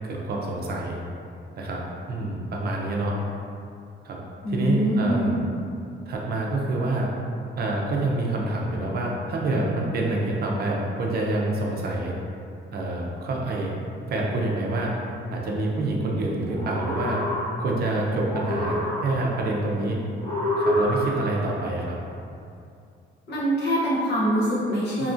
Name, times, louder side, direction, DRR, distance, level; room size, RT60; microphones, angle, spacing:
voice 1, 0.0-1.0 1.6-1.8 2.1-3.2 4.0-4.2 4.5-5.3 6.1-7.1 7.6-12.1 12.7-13.8 14.1-14.9 15.3-17.2 17.6-20.0 20.6-22.0 25.0-25.1, right 2 dB, 50° right, -2 dB, 0.5 m, -27 dB
voice 2, 4.4-5.4 23.3-25.1, equal, 60° left, -7 dB, 0.9 m, -24 dB
sound 1, 16.5-17.9 18.2-19.5 20.2-21.5, equal, 75° left, 1.4 m, -27 dB
2.8 x 2.3 x 2.5 m, 2.5 s
cardioid pair, 90°, 20 cm